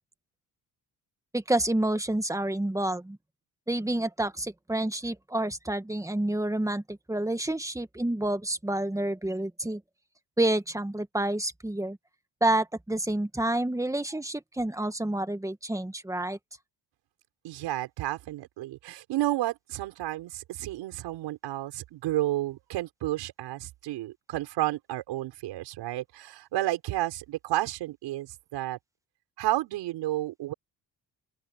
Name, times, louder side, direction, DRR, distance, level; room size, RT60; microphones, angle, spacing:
voice 1, 1.3-3.2 3.7-9.8 10.4-12.0 12.4-16.4, right 1 dB, 10° right, 1.9 m, -29 dB
voice 2, 17.4-28.8 29.4-30.5, right 15 dB, 90° right, 6.6 m, -31 dB
open air
cardioid pair, 95°, 41 cm